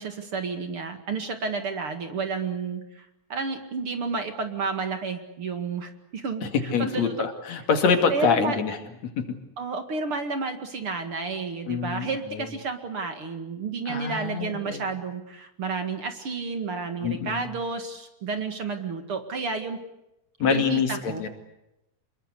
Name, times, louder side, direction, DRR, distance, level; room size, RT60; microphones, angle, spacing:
voice 1, 0.0-7.1 8.1-8.6 9.6-19.8 20.5-21.2, right 4 dB, 45° right, 7 dB, 2.6 m, -31 dB
voice 2, 6.4-8.8 9.2-9.3 11.7-12.1 12.3-12.5 13.9-14.8 17.0-17.5 20.4-21.3, left 6 dB, 60° left, 7 dB, 3.5 m, -25 dB
27.5 x 22.0 x 8.3 m, 0.89 s
omnidirectional pair, 3.6 m